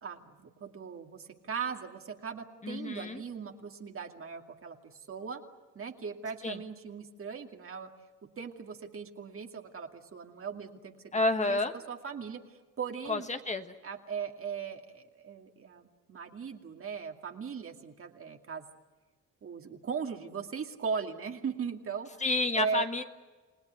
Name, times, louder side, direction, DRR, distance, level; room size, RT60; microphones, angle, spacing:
voice 1, 0.0-5.4 5.7-7.9 8.4-11.6 11.9-13.3 13.8-18.7 19.4-22.2 22.5-22.9, right 6 dB, 45° right, 4 dB, 2.4 m, -39 dB
voice 2, 2.6-3.2 6.4-6.6 11.1-11.7 13.1-13.7 22.2-23.0, left 2 dB, 25° left, 7 dB, 1.5 m, -30 dB
30.0 x 18.5 x 9.5 m, 1.3 s
cardioid pair, 90°, 30 cm